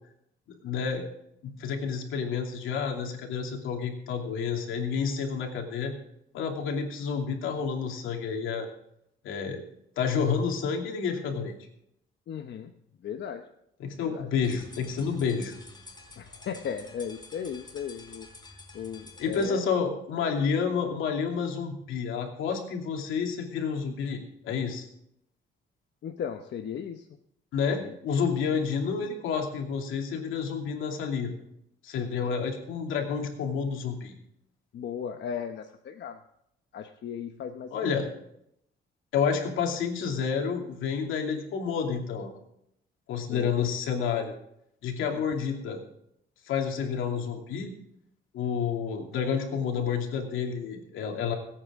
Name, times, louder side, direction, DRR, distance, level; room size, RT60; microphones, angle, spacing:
voice 1, 0.6-1.0 1.6-5.9 6.3-8.7 9.2-9.6 10.0-11.5 13.8-15.5 19.2-24.9 27.5-31.3 31.8-34.2 37.7-38.1 39.1-42.3 43.1-44.3 44.8-45.8 46.5-47.7 48.3-51.3, left 6 dB, 85° left, 2 dB, 2.7 m, -29 dB
voice 2, 12.3-12.7 13.0-13.5 14.0-14.3 16.2-19.6 26.0-27.1 27.7-27.9 32.2-32.3 34.7-36.2 36.7-37.9 43.3-43.5, left 7 dB, 60° left, 5 dB, 1.0 m, -37 dB
sound 1, 14.4-19.5, left 3 dB, 20° left, 3.6 m, -49 dB
22.0 x 8.8 x 3.7 m, 0.76 s
cardioid pair, 90°, 20 cm